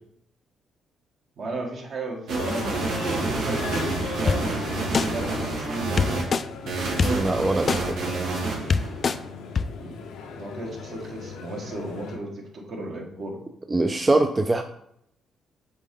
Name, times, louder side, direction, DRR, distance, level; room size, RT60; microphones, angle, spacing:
voice 1, 1.4-3.6 4.2-6.2 9.8-10.0 10.4-13.4, right 2 dB, 60° right, 0 dB, 1.6 m, -35 dB
sound 1, 2.3-6.2 6.7-9.2, right 3 dB, 85° right, 1.8 m, -28 dB
sound 2, 2.4-12.2, left 4 dB, 90° left, 0.8 m, -37 dB
sound 3, 4.3-4.4 4.9-5.1 6.0-6.4 7.0-7.1 7.7-7.8 8.4-8.5 8.7-9.2 9.6-9.7, left 5 dB, 45° left, 0.3 m, -21 dB
voice 2, 7.1-8.2 13.7-14.6, right 2 dB, 20° right, 5 dB, 0.4 m, -23 dB
7.3 x 3.7 x 3.8 m, 0.74 s
cardioid pair, 90°, 0 cm